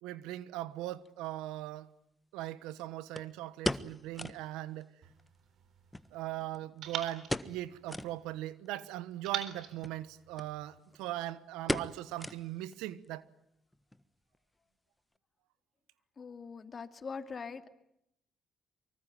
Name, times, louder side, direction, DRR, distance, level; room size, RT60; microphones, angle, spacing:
voice 1, 0.0-1.9 2.3-4.9 6.1-13.2, right 14 dB, 85° right, 1.1 m, -40 dB
sound 1, 1.1-1.2 3.2-4.5 4.8-4.9 5.2-5.3 5.9-6.8 7.2-7.6 7.9-8.2 8.7-8.8 9.7-10.0 10.4-10.5 10.8-11.1 11.7-12.7 13.0-13.1 13.7-14.1 14.3-14.4, left 1 dB, 10° left, 1.4 m, -37 dB
sound 2, 5.0-6.2 6.8-8.4 9.2-10.8, right 8 dB, 70° right, 3.8 m, -44 dB
voice 2, 16.2-17.7, left 5 dB, 45° left, 2.6 m, -42 dB
25.0 x 23.5 x 9.3 m
supercardioid pair, 60°, 0 cm